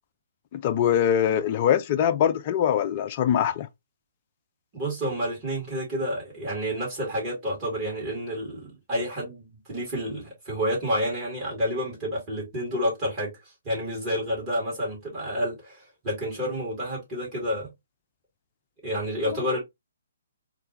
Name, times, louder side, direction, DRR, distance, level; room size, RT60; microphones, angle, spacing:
voice 1, 0.5-3.7, left 9 dB, 35° left, 0.3 m, -23 dB
voice 2, 4.7-13.3 13.7-17.7 18.8-19.6, equal, 25° right, 1.9 m, -29 dB
4.4 x 2.3 x 2.9 m
figure-of-eight pair, 130°, 0 cm